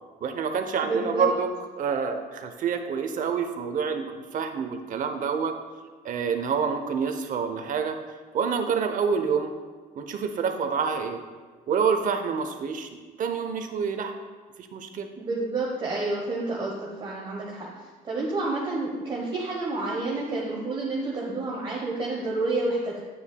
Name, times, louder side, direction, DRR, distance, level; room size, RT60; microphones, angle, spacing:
voice 1, 0.2-1.5 1.8-5.5 6.0-8.0 8.3-9.5 9.9-11.2 11.7-12.9 13.2-14.1 14.6-15.1, right 6 dB, 50° right, 7 dB, 0.7 m, -27 dB
voice 2, 0.8-1.3 15.2-23.1, right 2 dB, 30° right, -4 dB, 1.1 m, -29 dB
8.6 x 7.0 x 2.2 m, 1.4 s
cardioid pair, 110°, 17 cm